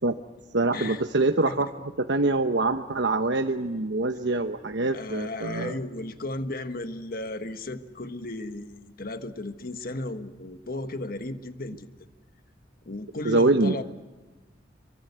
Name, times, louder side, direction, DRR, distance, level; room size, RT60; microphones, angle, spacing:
voice 1, 0.5-5.8 13.2-13.8, right 2 dB, 75° right, 6 dB, 1.1 m, -25 dB
voice 2, 4.9-11.9 12.8-13.8, left 2 dB, 55° left, 9 dB, 1.5 m, -35 dB
26.5 x 24.5 x 8.2 m, 1.2 s
head